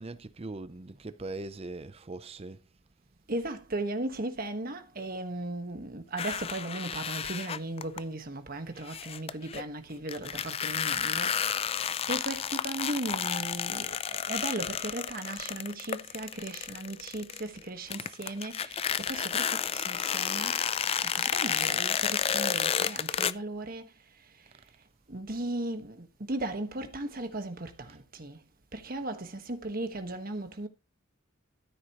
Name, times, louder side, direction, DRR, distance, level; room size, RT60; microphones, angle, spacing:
voice 1, 0.0-2.6, right 2 dB, 30° right, 0.5 m, -40 dB
voice 2, 3.3-23.9 25.1-28.4 28.7-30.7, right 2 dB, 45° right, 1.4 m, -37 dB
sound 1, 6.2-8.0 8.9-9.6 10.1-17.6 17.9-23.3, left 8 dB, 30° left, 0.4 m, -31 dB
13.5 x 8.0 x 3.0 m
head